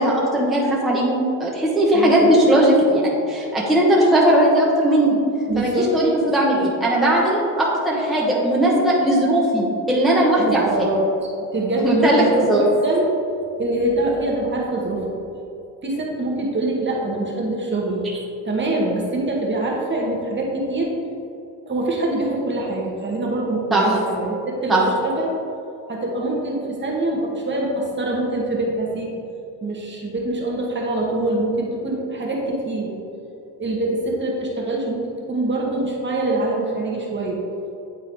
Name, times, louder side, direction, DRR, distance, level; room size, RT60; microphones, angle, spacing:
voice 1, 0.0-3.0 3.3-5.2 5.6-10.9 11.8-12.6 23.7-23.8 24.7-24.8, right 1 dB, ahead, -5 dB, 1.0 m, -18 dB
voice 2, 1.9-2.4 5.5-5.9 10.4-12.5 12.8-13.1 13.6-15.2 15.8-18.0 18.4-20.9 21.7-25.3 25.9-29.2 29.6-32.9 33.6-37.4, right 2 dB, 25° right, -2 dB, 1.2 m, -24 dB
9.2 x 3.6 x 3.6 m, 2.7 s
cardioid pair, 110°, 44 cm